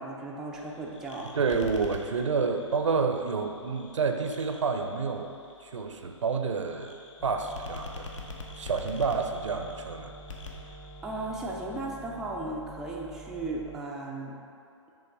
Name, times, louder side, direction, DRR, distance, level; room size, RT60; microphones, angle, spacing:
voice 1, 0.0-1.3 11.0-14.4, right 2 dB, 5° right, -4 dB, 0.3 m, -36 dB
sound 1, 0.5-11.8, left 4 dB, 70° left, 0.9 m, -47 dB
voice 2, 1.3-5.3 5.7-8.1 8.6-10.1, right 5 dB, 70° right, 6 dB, 0.6 m, -29 dB
sound 2, 7.2-13.8, right 1 dB, 20° left, 0.9 m, -47 dB
7.0 x 3.1 x 5.1 m, 2.6 s
figure-of-eight pair, 130°, 16 cm